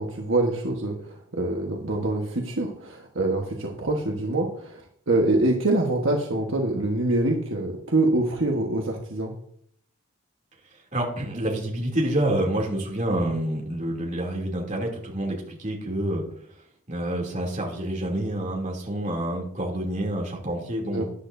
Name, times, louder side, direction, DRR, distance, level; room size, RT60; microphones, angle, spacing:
voice 1, 0.0-4.8 5.1-9.3 20.9-21.0, right 2 dB, 65° right, 0 dB, 1.4 m, -25 dB
voice 2, 10.9-16.2 16.9-21.0, right 1 dB, 35° right, -1 dB, 2.9 m, -28 dB
13.5 x 10.0 x 2.7 m, 0.66 s
head